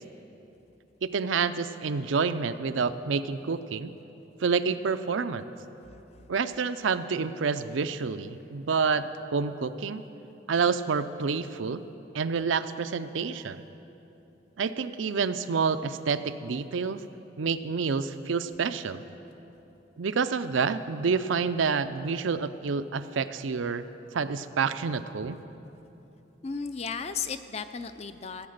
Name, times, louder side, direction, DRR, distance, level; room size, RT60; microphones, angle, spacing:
voice 1, 1.0-3.9 4.4-5.5 6.3-10.0 10.5-11.8 12.1-13.6 14.6-17.0 17.4-19.0 20.0-23.8 24.1-25.4, right 5 dB, 90° right, 11 dB, 0.5 m, -28 dB
voice 2, 26.4-28.5, left 5 dB, 35° left, 11 dB, 0.4 m, -34 dB
15.5 x 8.5 x 6.6 m, 3.0 s
head